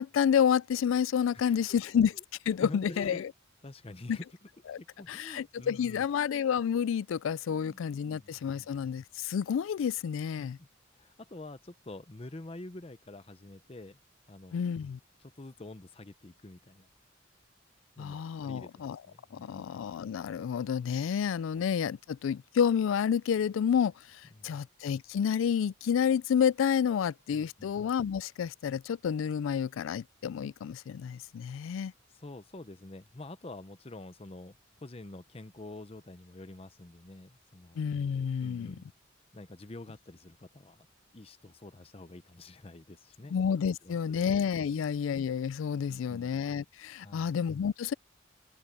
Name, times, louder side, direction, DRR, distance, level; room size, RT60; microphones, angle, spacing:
voice 1, 0.0-2.1 2.5-3.3 4.1-4.2 4.7-4.8 5.1-10.6 14.5-15.0 18.0-19.0 19.3-31.9 37.8-38.8 43.3-47.9, left 7 dB, 75° left, 0.3 m, -29 dB
voice 2, 1.3-1.8 2.1-2.2 2.6-3.3 3.6-4.2 4.8-6.0 7.5-7.8 8.1-8.7 10.4-10.7 10.9-14.0 14.3-14.6 15.2-16.9 18.0-19.7 21.5-21.7 24.3-24.6 27.3-27.8 32.1-34.6 34.8-37.8 38.4-38.9 39.3-40.9 41.1-43.4 43.8-44.3 44.7-44.8 45.9-46.3 47.0-47.4, left 2 dB, 30° left, 0.7 m, -47 dB
open air
head